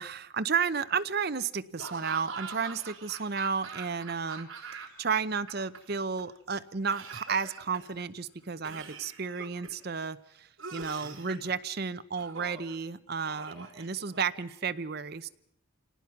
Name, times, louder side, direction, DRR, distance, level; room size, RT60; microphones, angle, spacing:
voice 1, 0.0-15.3, right 5 dB, 45° right, 13 dB, 0.7 m, -32 dB
Laughter / Cough, 1.8-5.1 5.4-6.2 6.9-8.0 8.6-9.8 10.6-11.5 12.2-12.8 13.2-14.4, right 4 dB, 65° right, 3.6 m, -43 dB
28.0 x 18.5 x 5.9 m, 0.78 s
head